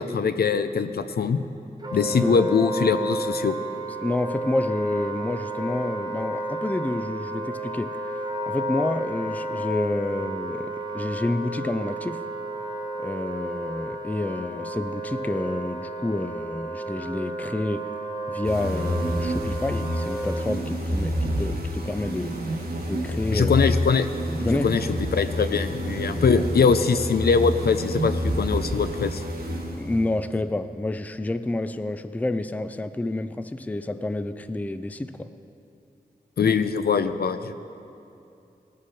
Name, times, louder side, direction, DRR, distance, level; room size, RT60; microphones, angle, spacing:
voice 1, 0.0-1.4 1.9-3.6 23.3-24.1 24.4-24.9 25.1-29.2 36.4-37.5, left 5 dB, 75° left, 0.5 m, -22 dB
Wind instrument woodwind instrument, 1.8-20.4, right 2 dB, 25° right, 1.2 m, -32 dB
voice 2, 4.0-8.0 8.5-12.2 13.0-18.0 18.3-22.4 22.9-23.5 24.4-24.8 25.4-25.6 26.3-26.4 29.8-35.3, left 2 dB, 10° left, 0.4 m, -29 dB
sound 1, 18.4-30.2, equal, 70° right, 1.4 m, -28 dB
18.5 x 7.0 x 4.7 m
wide cardioid pair, 70°, 16 cm